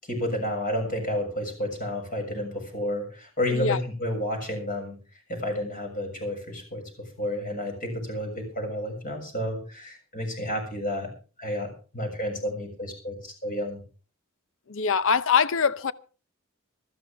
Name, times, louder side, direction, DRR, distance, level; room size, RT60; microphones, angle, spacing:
voice 1, 0.0-5.0 5.3-11.1 11.4-13.8, left 1 dB, 40° left, 6.9 m, -31 dB
voice 2, 14.7-15.9, left 6 dB, 65° left, 0.7 m, -23 dB
19.5 x 14.0 x 3.5 m
head